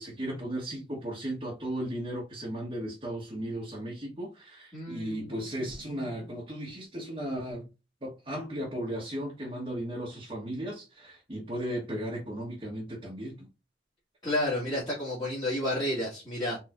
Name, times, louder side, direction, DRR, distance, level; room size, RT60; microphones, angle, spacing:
voice 1, 0.0-7.7 8.0-13.5, right 1 dB, 30° right, 1.2 m, -36 dB
voice 2, 4.7-5.3 14.2-16.6, left 1 dB, 25° left, 1.8 m, -31 dB
4.3 x 3.5 x 2.5 m
head